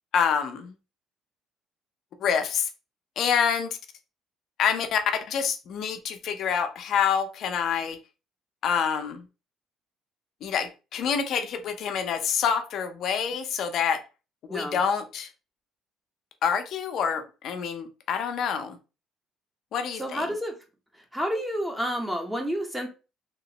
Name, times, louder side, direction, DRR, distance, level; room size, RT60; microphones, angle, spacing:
voice 1, 0.1-0.7 2.2-2.7 3.2-3.8 4.6-5.0 5.3-8.0 8.6-9.2 10.4-14.0 14.5-15.3 16.4-18.8 19.7-20.2, left 7 dB, 65° left, 7 dB, 0.6 m, -27 dB
voice 2, 14.5-14.8 20.0-20.5 21.1-22.9, equal, 5° right, 3 dB, 0.9 m, -29 dB
3.0 x 3.0 x 2.9 m, 0.31 s
cardioid pair, 100°, 0 cm